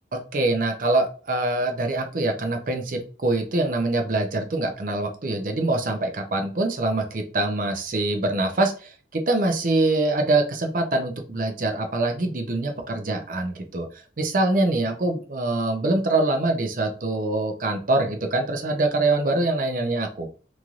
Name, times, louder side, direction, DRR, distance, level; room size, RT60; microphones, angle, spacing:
voice 1, 0.3-13.9 14.2-20.3, right 2 dB, 50° right, 4 dB, 0.5 m, -24 dB
3.1 x 2.6 x 2.4 m, 0.38 s
head